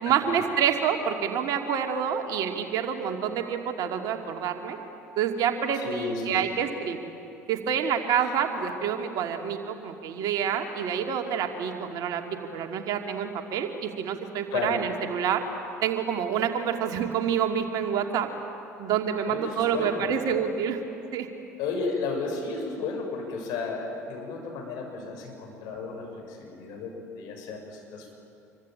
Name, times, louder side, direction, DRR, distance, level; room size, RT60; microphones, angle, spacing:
voice 1, 0.0-4.8 5.2-7.1 7.5-12.2 12.5-15.4 15.8-18.3 18.8-20.8 21.1-21.3, right 8 dB, 50° right, 4 dB, 2.6 m, -27 dB
voice 2, 5.7-6.6 14.5-14.8 19.3-20.1 21.6-28.1, left 4 dB, 55° left, 1 dB, 7.1 m, -33 dB
27.0 x 24.0 x 9.0 m, 2.8 s
figure-of-eight pair, 65°, 8 cm